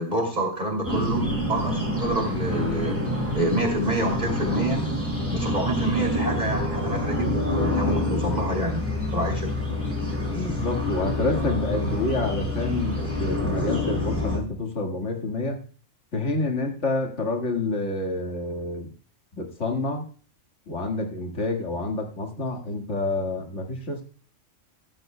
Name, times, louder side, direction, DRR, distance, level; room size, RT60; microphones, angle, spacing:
voice 1, 0.0-3.0 3.3-4.8 5.3-8.9 9.1-9.5, right 1 dB, 35° right, 1 dB, 2.9 m, -27 dB
sound 1, 0.8-14.4, left 1 dB, 10° right, 5.1 m, -27 dB
voice 2, 10.3-15.6 16.1-18.9 19.4-20.0 20.7-24.0, left 2 dB, 70° left, 2 dB, 2.1 m, -28 dB
15.5 x 13.5 x 2.2 m, 0.41 s
omnidirectional pair, 1.3 m